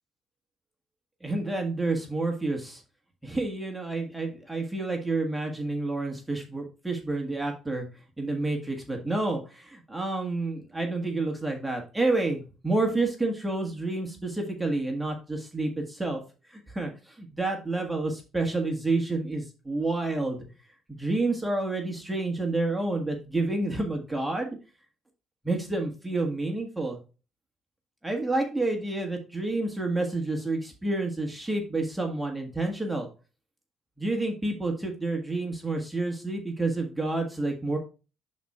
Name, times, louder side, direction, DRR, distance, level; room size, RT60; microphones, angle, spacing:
voice 1, 1.2-2.8 3.2-7.8 8.2-16.2 16.5-20.4 20.9-24.6 25.4-27.0 28.0-33.1 34.0-37.8, right 2 dB, 10° right, 2 dB, 1.5 m, -29 dB
11.0 x 4.2 x 2.4 m, 0.32 s
cardioid pair, 115°, 0 cm